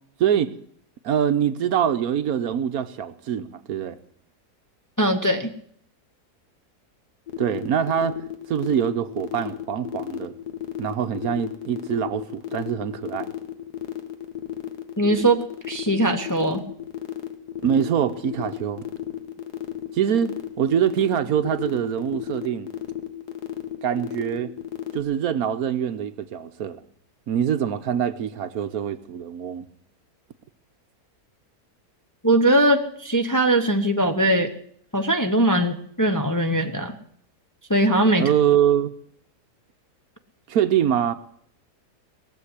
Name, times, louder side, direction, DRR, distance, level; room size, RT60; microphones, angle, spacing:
voice 1, 0.2-0.5 1.0-4.0 7.4-8.2 8.5-10.3 10.8-13.3 17.6-18.9 19.9-22.7 23.8-24.5 24.9-26.8 27.3-29.7 38.2-38.9 40.5-41.1, right 9 dB, 70° right, 1.3 m, -24 dB
voice 2, 5.0-5.5 15.0-16.6 32.2-34.5 34.9-36.9 37.7-38.3, right 1 dB, 15° left, 0.8 m, -20 dB
sound 1, 7.3-25.0, left 12 dB, 85° left, 1.9 m, -33 dB
18.5 x 7.4 x 9.7 m
omnidirectional pair, 1.7 m